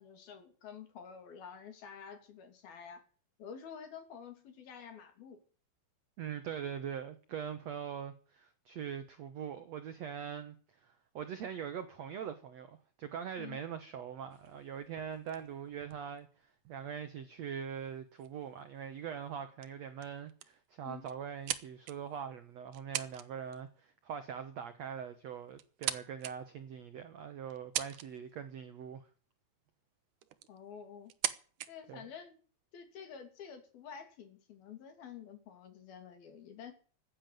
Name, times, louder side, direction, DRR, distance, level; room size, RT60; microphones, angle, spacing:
voice 1, 0.0-3.0 3.4-5.4 13.4-13.6 20.8-21.0 30.5-31.1 31.7-32.4 32.7-36.7, left 7 dB, 65° left, 4.5 m, -49 dB
voice 2, 6.2-10.6 10.8-29.1 31.9-32.0, right 8 dB, 85° right, 1.4 m, -42 dB
Miscjdr Car Seatbelt buckle and unbuckle, 14.3-16.9 17.8-17.9 18.2-18.5 19.0-19.4 19.6-19.7 20.0-20.6 21.1-22.2 22.7-23.3 23.5-23.8 24.9-25.0 25.5-26.3 26.9-27.0 27.5-28.3 29.7-29.8 30.2-30.6 31.0-31.7, right 13 dB, 70° right, 1.9 m, -40 dB
15.0 x 9.9 x 9.2 m
omnidirectional pair, 4.9 m